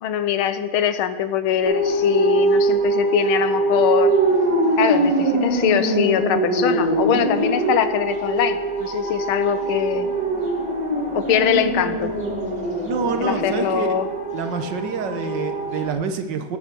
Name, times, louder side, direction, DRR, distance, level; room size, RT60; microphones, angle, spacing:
voice 1, 0.0-4.1 4.8-10.1 11.1-12.1 13.2-14.1, left 9 dB, 80° left, 12 dB, 1.6 m, -22 dB
sound 1, 1.6-15.9, right 2 dB, 20° right, 2.8 m, -22 dB
voice 2, 12.8-13.9 14.3-16.6, right 5 dB, 60° right, 8 dB, 1.5 m, -27 dB
19.5 x 8.0 x 6.0 m, 1.3 s
omnidirectional pair, 2.3 m